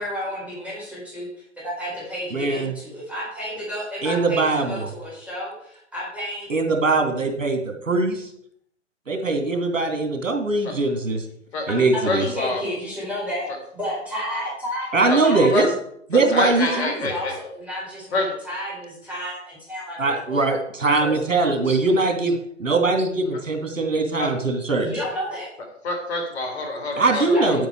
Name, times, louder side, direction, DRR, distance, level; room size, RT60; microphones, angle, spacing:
voice 1, 0.0-6.5 11.7-13.5 13.7-15.7 16.6-20.6 21.0-21.2 21.6-21.9 24.8-25.5 27.1-27.6, equal, 5° right, -7 dB, 4.7 m, -32 dB
voice 2, 2.3-2.7 4.0-4.9 6.5-8.2 9.1-11.2 11.7-12.2 14.9-15.7 16.1-17.1 20.0-24.9 27.0-27.7, right 3 dB, 75° right, 4 dB, 2.5 m, -21 dB
voice 3, 12.1-12.6 15.1-15.2 15.5-15.7 16.3-17.3 18.1-18.3 24.2-24.3 25.8-27.6, left 2 dB, 55° left, 3 dB, 3.5 m, -26 dB
9.6 x 7.9 x 4.7 m, 0.66 s
figure-of-eight pair, 125°, 38 cm